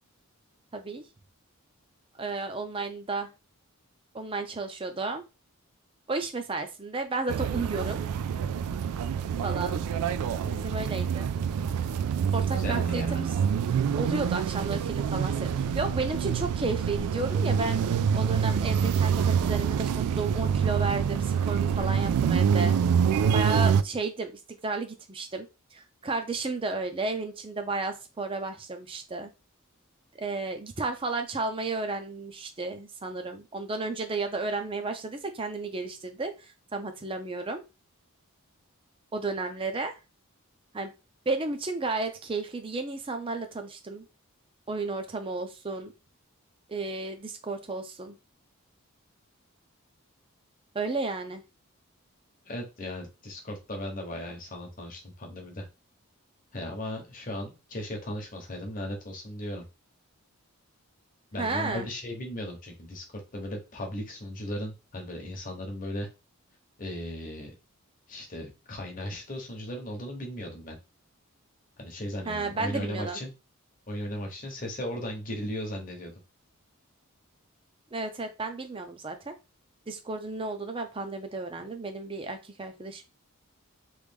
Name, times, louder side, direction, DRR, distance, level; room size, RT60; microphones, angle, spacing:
voice 1, 0.7-1.0 2.2-3.3 4.1-5.2 6.1-8.0 9.4-9.8 10.4-11.3 12.3-13.3 13.7-22.8 23.3-24.3 24.6-29.3 30.2-37.6 39.1-40.0 40.7-40.9 41.3-44.1 44.7-45.9 46.7-48.2 50.7-51.4 61.4-61.9 72.2-73.2 77.9-79.3 79.9-83.0, right 3 dB, 25° right, 7 dB, 0.5 m, -33 dB
sound 1, 7.3-23.8, right 7 dB, 90° right, 0.3 m, -26 dB
voice 2, 12.5-13.2 52.4-55.6 56.5-59.6 61.3-66.1 66.8-67.5 68.1-70.8 71.8-73.3 73.9-76.1, left 1 dB, 35° left, 2 dB, 0.9 m, -36 dB
3.2 x 2.4 x 3.5 m, 0.28 s
head